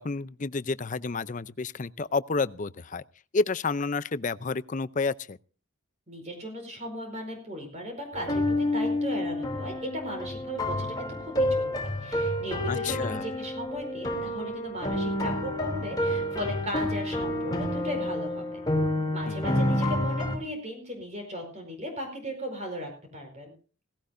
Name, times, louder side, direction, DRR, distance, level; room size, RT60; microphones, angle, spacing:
voice 1, 0.0-3.0 3.3-5.4 12.7-13.2 19.3-19.6, left 4 dB, 40° left, 0.5 m, -30 dB
voice 2, 6.1-11.7 12.0-18.6 19.1-23.5, equal, 35° right, 4.8 m, -37 dB
sound 1, 8.1-20.4, left 1 dB, 20° left, 3.0 m, -29 dB
18.0 x 17.0 x 2.6 m
head